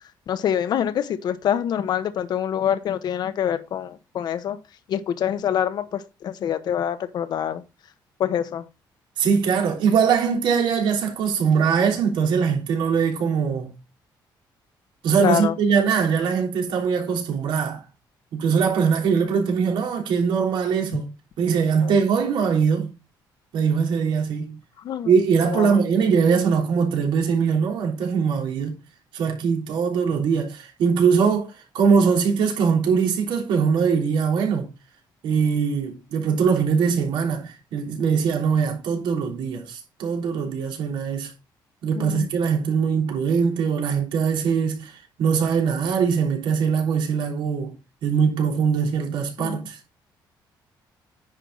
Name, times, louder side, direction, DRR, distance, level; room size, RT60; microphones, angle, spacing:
voice 1, 0.3-4.6 4.9-7.6 8.2-8.6 15.2-15.5 21.8-21.9 24.8-25.1 25.4-25.8 42.0-42.3 49.4-49.7, left 9 dB, 60° left, 1.0 m, -25 dB
voice 2, 9.2-13.7 15.0-17.8 18.3-21.1 21.4-22.9 23.5-24.6 25.1-28.8 29.1-34.7 35.2-41.3 41.8-47.7 48.0-49.8, right 6 dB, 80° right, 3.4 m, -22 dB
9.9 x 5.8 x 3.9 m
cardioid pair, 135°, 8 cm